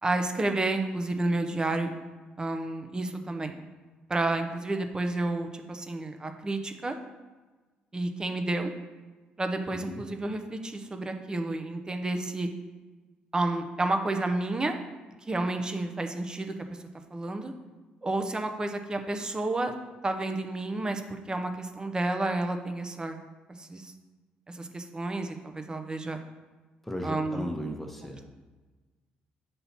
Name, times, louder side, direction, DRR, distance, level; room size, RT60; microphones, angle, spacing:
voice 1, 0.0-1.9 2.4-3.6 4.1-7.0 7.9-8.7 9.4-12.5 13.3-14.8 15.3-16.8 17.1-17.5 18.0-19.7 20.0-23.2 23.5-23.9 24.5-26.2 27.0-27.4, right 2 dB, 25° right, 6 dB, 0.7 m, -30 dB
voice 2, 9.7-10.0 26.8-28.3, equal, 5° left, 2 dB, 1.1 m, -36 dB
7.0 x 2.8 x 5.8 m, 1.3 s
cardioid pair, 80°, 3 cm